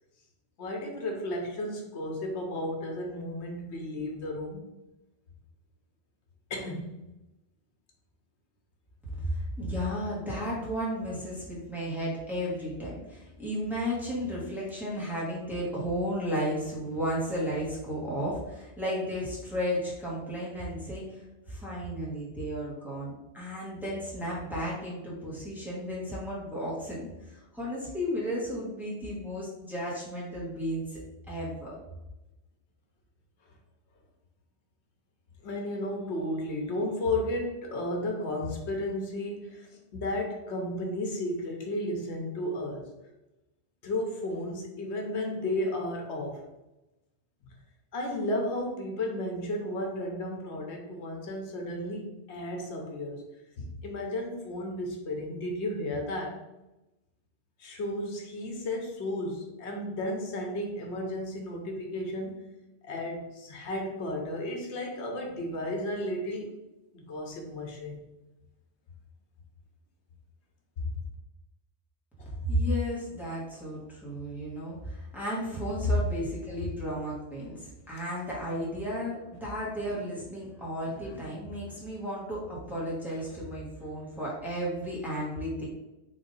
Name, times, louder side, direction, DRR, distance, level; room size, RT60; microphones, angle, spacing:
voice 1, 0.6-4.7 6.5-6.9 35.4-42.9 43.8-46.4 47.4-47.5 47.9-53.2 53.6-56.4 57.6-62.5 62.8-66.5 66.9-68.0 70.8-70.9 72.2-72.3 75.8-75.9 79.8-79.9 80.8-81.3 83.1-83.2, left 1 dB, 80° left, 1 dB, 1.0 m, -33 dB
voice 2, 9.2-31.0 31.3-31.8 72.4-85.7, equal, ahead, -7 dB, 1.2 m, -33 dB
3.6 x 2.7 x 3.9 m, 0.99 s
omnidirectional pair, 1.1 m